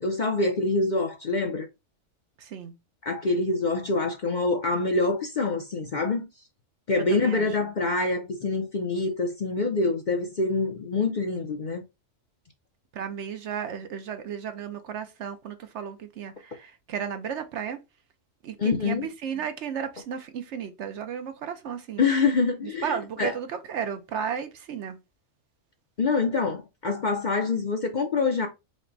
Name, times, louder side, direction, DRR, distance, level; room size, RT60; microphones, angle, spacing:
voice 1, 0.0-1.7 3.0-6.2 6.9-11.8 18.6-19.1 22.0-22.9 23.2-23.3 26.0-28.5, left 3 dB, 45° left, 0.6 m, -25 dB
voice 2, 2.4-2.7 7.0-7.5 12.9-17.8 18.4-19.0 19.2-22.1 22.8-25.0, right 8 dB, 65° right, 0.9 m, -34 dB
5.1 x 2.1 x 3.9 m
omnidirectional pair, 1.4 m